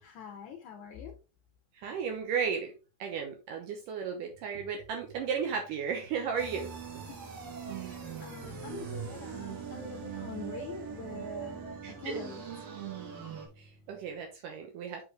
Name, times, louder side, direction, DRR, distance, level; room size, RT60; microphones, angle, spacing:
voice 1, 0.0-1.1 7.1-7.2 7.7-12.4, left 6 dB, 70° left, 3 dB, 2.0 m, -45 dB
voice 2, 1.7-2.7 3.0-7.0 8.4-8.5 11.8-12.2 13.6-15.0, right 6 dB, 75° right, 3 dB, 2.3 m, -35 dB
sound 1, 4.6-14.3, equal, 50° left, 1.5 m, -57 dB
sound 2, 6.4-13.5, right 7 dB, 55° right, 2.2 m, -41 dB
7.9 x 4.2 x 3.3 m, 0.32 s
omnidirectional pair, 4.1 m